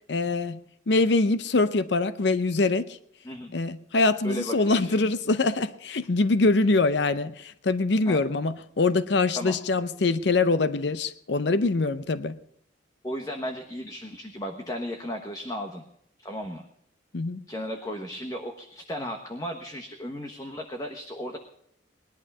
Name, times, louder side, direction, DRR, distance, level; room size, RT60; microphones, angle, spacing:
voice 1, 0.1-0.6 0.9-3.0 3.5-12.4 17.1-17.4, left 3 dB, 65° left, 13 dB, 0.7 m, -24 dB
voice 2, 4.2-5.1 8.1-8.2 9.4-9.6 13.0-15.8 16.2-16.6 17.5-21.4, equal, 20° left, 3 dB, 1.2 m, -35 dB
20.0 x 11.5 x 5.5 m, 0.72 s
head